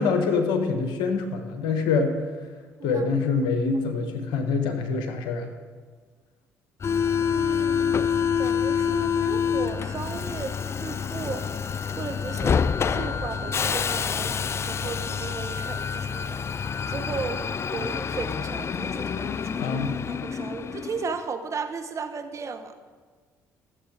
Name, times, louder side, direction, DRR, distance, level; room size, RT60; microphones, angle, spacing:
voice 1, 0.0-2.1 2.8-5.5 19.6-19.9, left 4 dB, 70° left, 6 dB, 1.2 m, -25 dB
Subway metro underground, 6.8-21.2, left 7 dB, 35° left, 0.3 m, -27 dB
voice 2, 7.3-11.5 12.0-14.3 14.6-17.4 17.7-19.8 20.1-22.7, right 5 dB, 40° right, 7 dB, 1.1 m, -35 dB
14.0 x 7.4 x 4.8 m, 1.5 s
hypercardioid pair, 55°, 8 cm